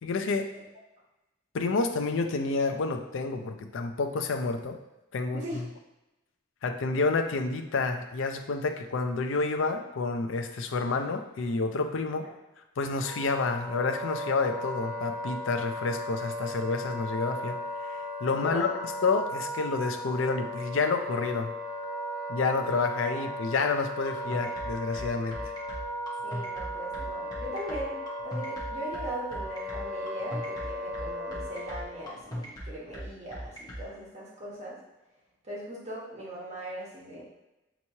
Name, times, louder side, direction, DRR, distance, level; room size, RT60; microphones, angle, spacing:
voice 1, 0.0-0.5 1.5-4.8 5.1-5.4 6.6-12.3 12.8-17.6 17.9-18.7 19.0-21.5 22.3-25.4, left 4 dB, 75° left, 6 dB, 0.4 m, -29 dB
Wind instrument woodwind instrument, 12.9-32.1, equal, 65° right, 1.0 m, -36 dB
voice 2, 18.3-18.8 23.1-23.2 26.2-34.8 35.4-37.2, right 1 dB, 35° right, -6 dB, 1.3 m, -40 dB
sound 1, 24.1-33.8, equal, 20° left, 0.9 m, -38 dB
5.4 x 3.0 x 2.8 m, 0.98 s
head